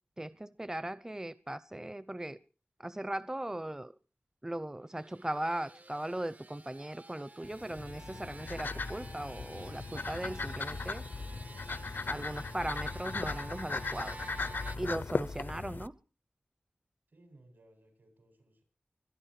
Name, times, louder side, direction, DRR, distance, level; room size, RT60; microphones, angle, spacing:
voice 1, 0.2-2.4 2.8-3.9 4.4-11.0 12.1-14.2 14.8-15.9, right 1 dB, 15° right, 16 dB, 0.7 m, -38 dB
sound 1, 4.8-14.8, right 2 dB, 50° right, 0.8 m, -51 dB
sound 2, 7.4-15.9, left 4 dB, 75° left, 0.7 m, -38 dB
voice 2, 17.1-18.6, right 1 dB, 75° right, 6 dB, 7.8 m, -61 dB
25.0 x 10.5 x 4.8 m, 0.38 s
wide cardioid pair, 55°, 3 cm